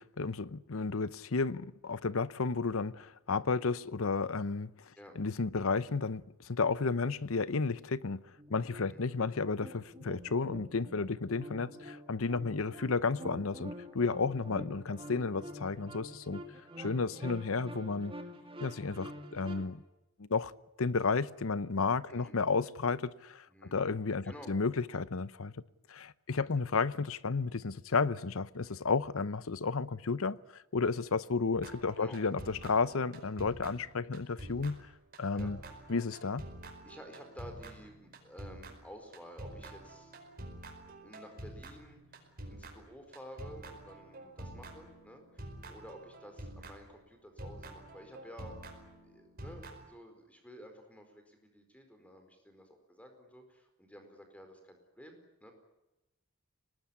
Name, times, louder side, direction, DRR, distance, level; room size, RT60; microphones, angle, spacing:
voice 1, 0.0-8.2 8.5-16.4 16.8-18.1 18.6-19.8 20.2-20.5 20.8-25.5 25.9-34.8 35.2-35.6 35.9-36.4, left 4 dB, 65° left, 0.8 m, -32 dB
sound 1, 8.4-19.6, equal, 25° right, 2.5 m, -47 dB
voice 2, 23.5-23.8 24.2-24.5 26.4-26.6 32.0-32.2 35.3-35.5 36.8-40.1 40.8-55.5, equal, 5° left, 4.6 m, -52 dB
sound 2, 31.5-47.0 47.4-49.8, right 1 dB, 45° right, 5.0 m, -48 dB
24.0 x 19.5 x 10.0 m
head